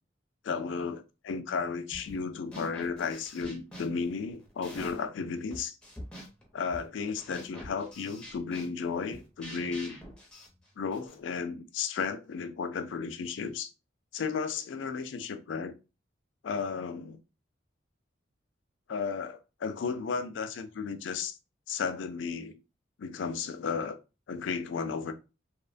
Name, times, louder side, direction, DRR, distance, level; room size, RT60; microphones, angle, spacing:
voice 1, 0.4-5.8 6.5-10.0 10.8-13.7 14.1-15.7 16.4-17.2 18.9-21.3 21.7-22.6 23.0-24.0 24.3-25.1, left 5 dB, 80° left, 0.4 m, -34 dB
sound 1, 1.9-2.2 2.5-5.2 5.5-11.2, equal, 5° left, 0.5 m, -46 dB
2.8 x 2.1 x 2.4 m
head